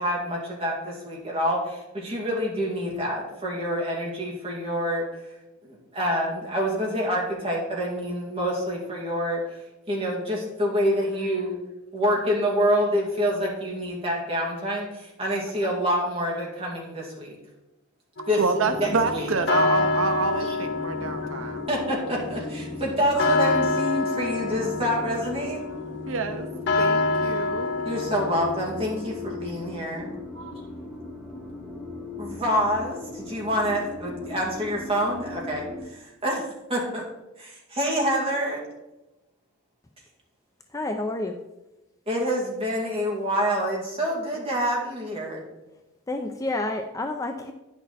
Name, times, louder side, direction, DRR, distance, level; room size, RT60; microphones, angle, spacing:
voice 1, 0.0-5.1 5.6-9.4 9.9-11.6 11.9-17.3 18.3-19.3 20.4-20.6 21.7-25.6 27.8-30.2 32.2-37.0 37.4-38.6 42.1-45.5, equal, 25° right, -3 dB, 2.3 m, -27 dB
sound 1, 18.2-29.4, left 3 dB, 55° left, 0.8 m, -28 dB
voice 2, 18.4-21.7 23.1-23.4 26.1-26.5 26.8-27.7 30.3-30.5, right 4 dB, 70° right, 7 dB, 0.6 m, -27 dB
sound 2, 18.6-35.8, left 3 dB, 5° right, 3.2 m, -38 dB
voice 3, 40.7-41.4 46.1-47.5, left 2 dB, 15° left, 5 dB, 0.4 m, -29 dB
9.6 x 6.2 x 4.1 m, 1.0 s
head